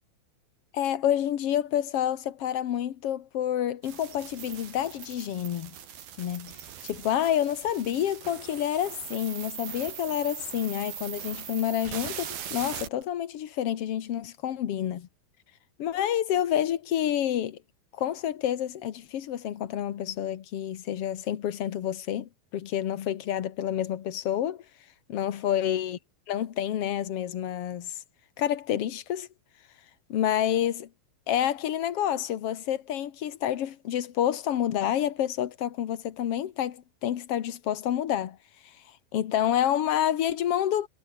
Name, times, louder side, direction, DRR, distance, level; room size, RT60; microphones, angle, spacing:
voice 1, 0.7-5.7 6.2-6.6 6.8-15.1 15.8-17.6 17.9-24.6 25.1-26.0 26.3-28.0 28.4-29.3 30.1-30.9 31.3-38.4 39.1-40.9, left 10 dB, 60° left, 1.6 m, -28 dB
sound 1, 3.8-13.0, right 9 dB, 70° right, 4.6 m, -40 dB
omnidirectional pair, 4.4 m